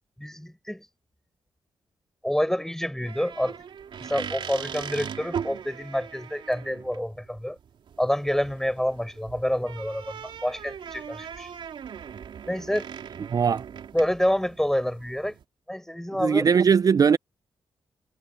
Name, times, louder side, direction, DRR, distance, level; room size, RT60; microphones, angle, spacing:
voice 1, 0.2-0.9 2.2-3.6 4.0-7.6 8.0-10.1 10.4-11.5 12.5-12.9 13.9-15.4 15.7-16.5, equal, 5° left, 5.3 m, -27 dB
sound 1, 3.0-15.4, right 7 dB, 70° right, 3.5 m, -40 dB
voice 2, 13.3-13.6 16.2-17.2, right 6 dB, 45° right, 0.4 m, -19 dB
supercardioid pair, 55°, 9 cm